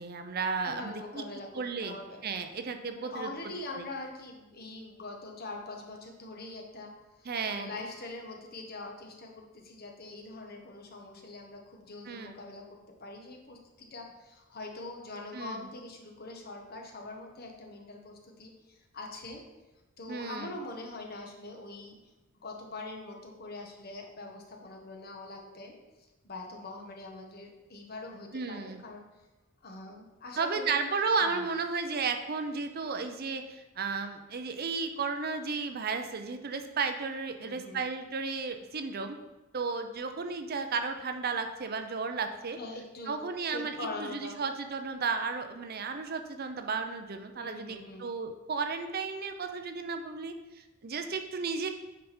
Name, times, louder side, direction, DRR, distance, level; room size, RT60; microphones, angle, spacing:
voice 1, 0.0-1.2 1.5-2.0 2.2-3.3 3.7-3.8 7.3-7.7 12.1-12.4 15.3-15.6 20.1-20.5 28.3-28.8 30.4-39.2 39.5-42.6 43.1-51.7, right 4 dB, 50° right, 7 dB, 0.6 m, -33 dB
voice 2, 0.7-2.2 2.9-6.9 7.2-19.4 20.0-21.9 22.4-25.7 26.2-29.0 29.6-30.8 31.2-31.5 37.4-37.8 42.5-43.2 43.5-44.4 47.4-48.1, left 2 dB, 50° left, 2 dB, 1.3 m, -43 dB
8.8 x 5.3 x 4.4 m, 1.1 s
head